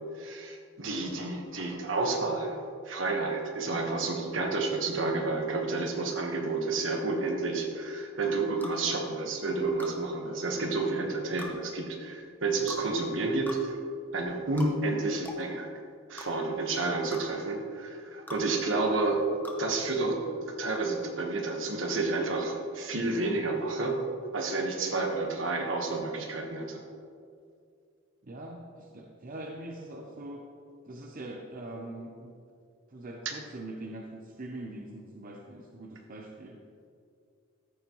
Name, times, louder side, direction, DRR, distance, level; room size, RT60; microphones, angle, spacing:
voice 1, 0.1-13.8 14.1-15.7 16.1-19.3 19.6-24.0 24.3-26.8, right 3 dB, 70° right, 2 dB, 1.3 m, -30 dB
sound 1, 8.6-8.8 9.8-10.0 11.4-11.5 12.7-12.9 13.5-13.6 14.6-14.7 15.2-15.4 16.2-16.3 17.1-17.2 18.3-18.4 19.4-19.6, left 2 dB, 10° left, 0.9 m, -41 dB
voice 2, 28.2-30.5 30.8-32.4 32.9-36.6, right 1 dB, 45° right, 1 dB, 0.7 m, -42 dB
13.5 x 7.1 x 3.1 m, 2.3 s
head